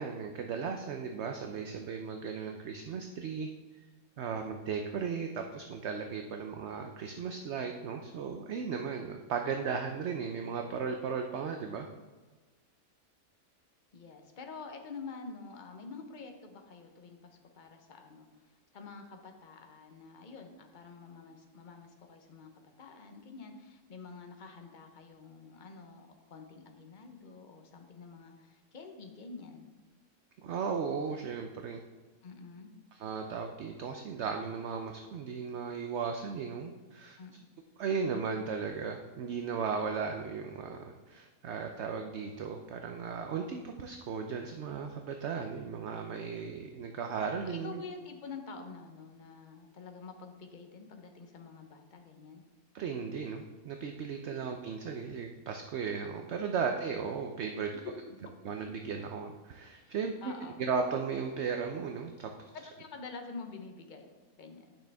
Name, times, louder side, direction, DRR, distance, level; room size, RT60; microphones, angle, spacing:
voice 1, 0.0-3.5 4.2-11.9 30.4-31.8 32.9-37.2 37.8-47.8 52.7-57.7 58.4-60.1 60.6-62.5, right 6 dB, 60° right, 4 dB, 0.8 m, -36 dB
voice 2, 13.9-29.7 32.2-32.7 37.2-37.5 47.4-52.4 54.3-54.4 57.8-58.2 59.9-60.6 62.5-64.1 64.4-64.6, left 4 dB, 40° left, 4 dB, 0.9 m, -47 dB
10.0 x 6.4 x 3.5 m, 1.3 s
omnidirectional pair, 1.6 m